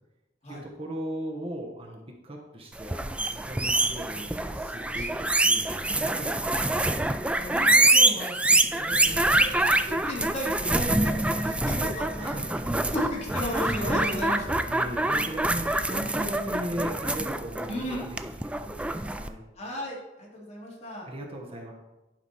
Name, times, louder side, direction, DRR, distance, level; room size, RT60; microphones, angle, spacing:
voice 1, 0.5-7.0 9.1-9.4 11.3-11.6 12.2-12.9 14.7-17.8 18.2-19.4 21.1-21.7, equal, 30° right, 1 dB, 1.1 m, -38 dB
sound 1, 2.8-19.3, right 2 dB, 5° right, 0.3 m, -25 dB
voice 2, 4.9-5.2 7.3-12.5 12.9-14.6 17.7-18.1 19.6-21.1, left 1 dB, 35° left, -4 dB, 2.6 m, -35 dB
10.5 x 5.2 x 4.2 m, 1.0 s
head